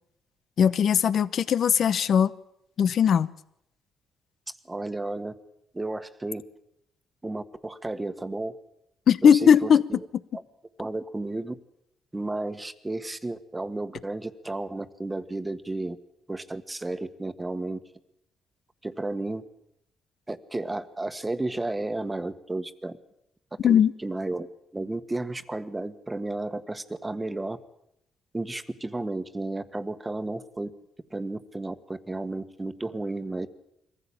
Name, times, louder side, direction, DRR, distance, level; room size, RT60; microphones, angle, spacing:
voice 1, 0.6-2.3 2.8-3.3 9.1-9.8 23.6-23.9, left 8 dB, 60° left, 0.9 m, -19 dB
voice 2, 4.6-5.3 5.7-6.4 7.2-8.5 9.2-10.0 10.8-11.5 12.1-16.0 16.3-17.8 18.8-19.4 20.3-22.9 23.6-24.5 24.7-27.6 28.3-30.7 31.1-33.5, right 2 dB, 15° right, 1.5 m, -33 dB
22.5 x 15.0 x 8.7 m
cardioid pair, 90°, 0 cm